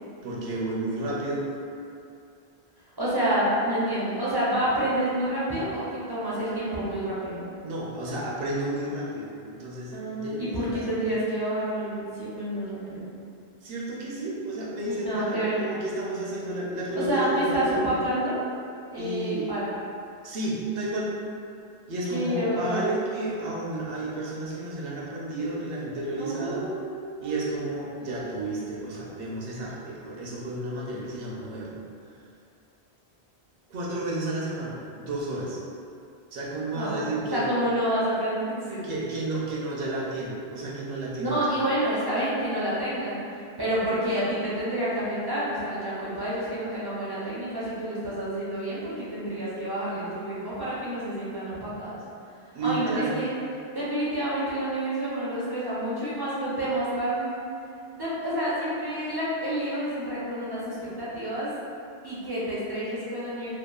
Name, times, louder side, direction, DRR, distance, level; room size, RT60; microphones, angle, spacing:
voice 1, 0.2-1.4 7.6-10.8 13.6-17.8 19.0-19.5 20.2-21.1 21.9-26.6 27.2-31.8 33.7-35.6 36.3-37.4 38.8-41.5 52.5-53.2, right 2 dB, 70° right, -5 dB, 0.7 m, -32 dB
voice 2, 3.0-7.5 9.9-13.1 14.8-15.6 16.9-18.4 18.9-19.7 22.1-22.8 26.2-26.9 27.2-27.4 36.7-38.8 41.2-52.0 52.6-53.3 53.7-57.4 57.9-61.5 62.0-63.5, right 1 dB, 40° right, -9 dB, 0.3 m, -29 dB
2.8 x 2.2 x 2.2 m, 2.5 s
omnidirectional pair, 1.1 m